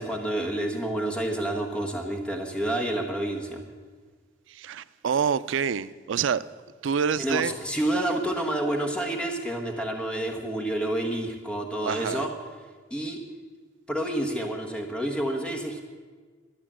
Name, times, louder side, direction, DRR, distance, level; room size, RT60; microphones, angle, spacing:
voice 1, 0.0-3.6 7.2-12.3 12.9-13.2 13.9-15.8, right 1 dB, 5° left, 1.2 m, -29 dB
voice 2, 4.5-6.4 6.8-7.5 11.8-12.2, right 7 dB, 80° right, 0.4 m, -27 dB
12.5 x 9.2 x 7.4 m
head